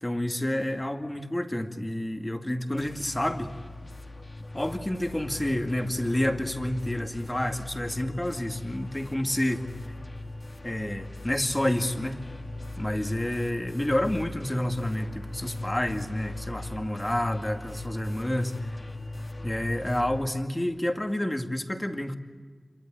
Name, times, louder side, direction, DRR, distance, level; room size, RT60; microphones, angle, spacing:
voice 1, 0.0-3.5 4.5-9.7 10.6-12.2 12.8-18.7 19.4-22.2, left 1 dB, 20° left, 5 dB, 2.2 m, -29 dB
sound 1, 2.8-20.2, left 2 dB, 40° left, 2.5 m, -39 dB
27.0 x 23.5 x 8.9 m, 1.5 s
wide cardioid pair, 55°, 0 cm